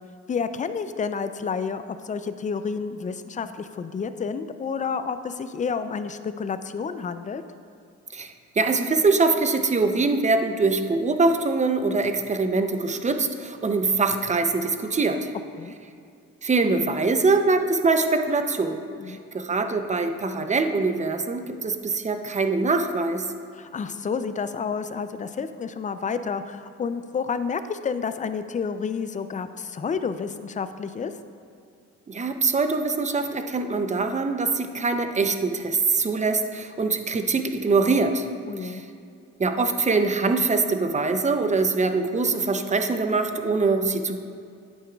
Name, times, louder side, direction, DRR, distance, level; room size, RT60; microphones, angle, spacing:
voice 1, 0.3-7.4 15.6-15.7 19.0-19.2 23.5-31.1 38.5-38.8, left 5 dB, 25° left, 11 dB, 0.4 m, -30 dB
voice 2, 8.1-15.3 16.4-18.8 19.1-23.3 32.1-38.2 38.6-38.8 39.4-44.2, right 3 dB, 25° right, 7 dB, 0.6 m, -23 dB
10.0 x 8.5 x 2.3 m, 2.4 s
cardioid pair, 90°, 30 cm